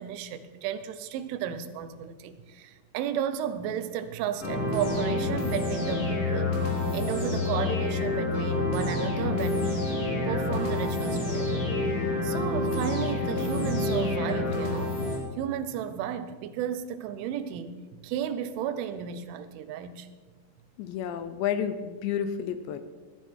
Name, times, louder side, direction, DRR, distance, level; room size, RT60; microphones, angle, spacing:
voice 1, 0.0-9.9 10.3-11.9 12.2-15.0 15.4-20.1, right 9 dB, 90° right, 11 dB, 3.3 m, -33 dB
sound 1, 4.4-15.2, left 2 dB, 35° left, 3.3 m, -28 dB
voice 2, 20.8-22.8, left 8 dB, 80° left, 10 dB, 2.7 m, -30 dB
17.0 x 12.5 x 4.5 m, 1.4 s
omnidirectional pair, 5.4 m